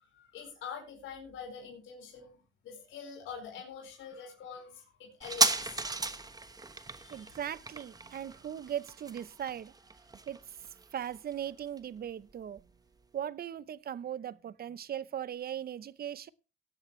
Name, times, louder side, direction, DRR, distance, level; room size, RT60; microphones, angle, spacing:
voice 1, 0.1-5.8 6.9-7.3, left 6 dB, 80° left, 4.9 m, -45 dB
sound 1, 5.2-12.3 12.6-12.7, right 3 dB, 20° right, 1.1 m, -35 dB
voice 2, 7.1-9.7 10.3-10.4 10.9-12.6 13.1-16.3, right 10 dB, 50° right, 0.7 m, -38 dB
18.0 x 10.5 x 3.2 m
cardioid pair, 90°, 20 cm